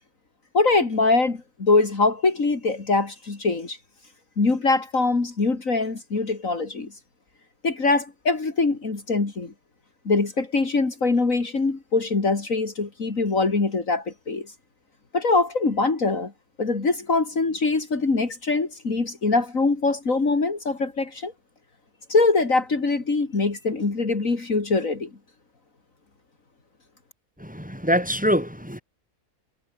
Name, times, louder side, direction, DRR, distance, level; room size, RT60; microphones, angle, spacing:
voice 1, 0.5-3.8 4.4-6.9 7.6-9.5 10.1-14.5 15.1-16.3 16.6-21.3 22.1-25.1, left 3 dB, 65° left, 3.5 m, -23 dB
voice 2, 27.4-28.8, equal, 5° right, 5.5 m, -24 dB
omnidirectional pair, 1.5 m